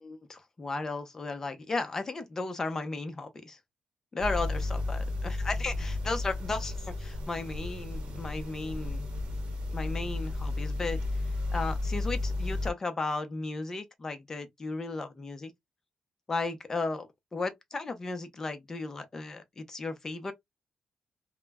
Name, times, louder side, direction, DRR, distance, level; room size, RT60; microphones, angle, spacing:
voice 1, 0.0-3.6 4.1-9.1 9.7-15.5 16.3-20.3, left 3 dB, 25° left, 0.6 m, -35 dB
sound 1, 4.2-12.7, left 2 dB, 65° right, 0.8 m, -33 dB
2.2 x 2.0 x 3.3 m
wide cardioid pair, 145°, 2 cm